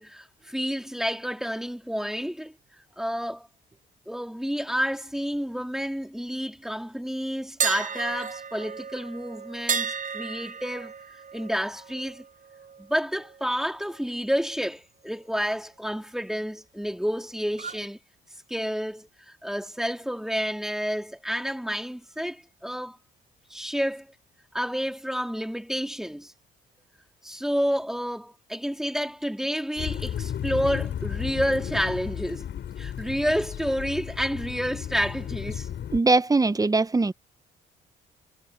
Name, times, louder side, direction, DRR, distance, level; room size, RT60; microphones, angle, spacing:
voice 1, 0.0-2.5 3.0-3.5 4.1-10.9 11.3-12.2 12.8-18.0 18.5-19.1 19.4-23.0 23.5-24.1 24.5-26.3 27.2-32.5 32.8-35.7, equal, ahead, 2.8 m, -29 dB
sound 1, 7.6-13.5 13.8-14.0 17.5-17.9, right 7 dB, 40° right, 5.2 m, -33 dB
sound 2, 29.8-36.0, left 9 dB, 65° left, 4.7 m, -33 dB
voice 2, 35.9-37.1, right 3 dB, 20° right, 0.8 m, -21 dB
cardioid pair, 90°, 20 cm